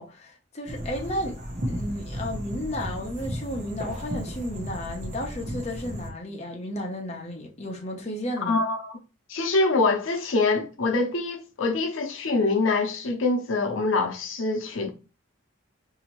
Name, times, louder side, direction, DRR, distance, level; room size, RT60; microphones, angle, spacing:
voice 1, 0.0-1.4 1.7-8.6, left 1 dB, 35° left, 0.8 m, -33 dB
sound 1, 0.7-6.1, equal, 40° right, 0.9 m, -34 dB
voice 2, 8.4-9.0 9.3-14.9, left 3 dB, 80° left, 0.7 m, -25 dB
4.0 x 2.8 x 3.0 m
head